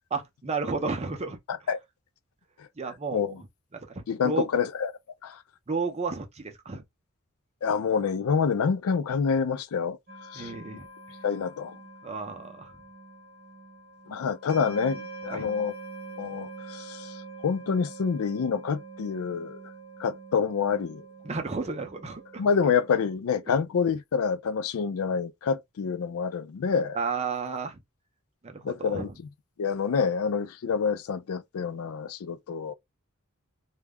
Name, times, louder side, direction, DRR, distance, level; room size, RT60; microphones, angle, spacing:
voice 1, 0.1-1.4 2.8-3.3 3.7-4.5 5.7-6.8 10.3-10.9 12.0-12.7 15.3-15.5 21.2-22.4 26.9-27.8 28.4-29.1, right 4 dB, 30° right, 0.6 m, -32 dB
voice 2, 1.5-1.8 3.1-3.4 4.1-4.9 5.2-5.4 7.6-10.0 10.3-10.5 11.2-11.8 14.1-15.7 16.2-17.2 17.4-19.6 20.0-21.0 22.4-27.0 28.6-29.1 29.6-32.7, left 6 dB, 85° left, 0.4 m, -27 dB
sound 1, 10.1-23.2, right 3 dB, 45° right, 0.9 m, -45 dB
2.3 x 2.1 x 3.4 m
head